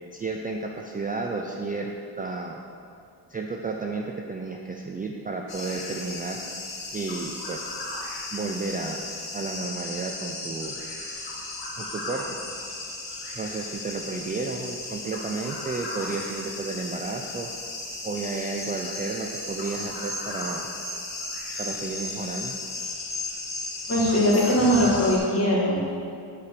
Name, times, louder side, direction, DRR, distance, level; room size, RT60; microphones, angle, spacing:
voice 1, 0.1-2.6 3.3-6.4 6.9-7.7 8.3-9.1 9.3-10.7 11.8-12.6 13.4-17.5 18.0-20.6 21.6-22.6, right 3 dB, 20° right, 1 dB, 0.4 m, -32 dB
sound 1, 5.5-25.2, left 2 dB, 85° left, 1.8 m, -35 dB
voice 2, 23.9-25.8, equal, 30° left, -5 dB, 1.9 m, -21 dB
8.5 x 5.0 x 6.0 m, 2.5 s
wide cardioid pair, 150°, 43 cm